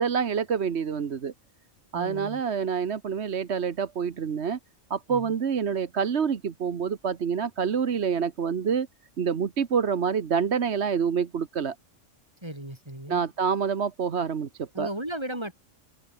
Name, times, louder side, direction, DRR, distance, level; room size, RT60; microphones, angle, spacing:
voice 1, 0.0-1.3 1.9-4.6 4.9-8.9 9.2-11.7 13.1-14.9, right 6 dB, 60° right, 1.4 m, -27 dB
voice 2, 1.9-2.4 5.1-5.3 12.4-13.2 14.7-15.5, right 1 dB, 20° right, 5.7 m, -35 dB
open air
omnidirectional pair, 1.3 m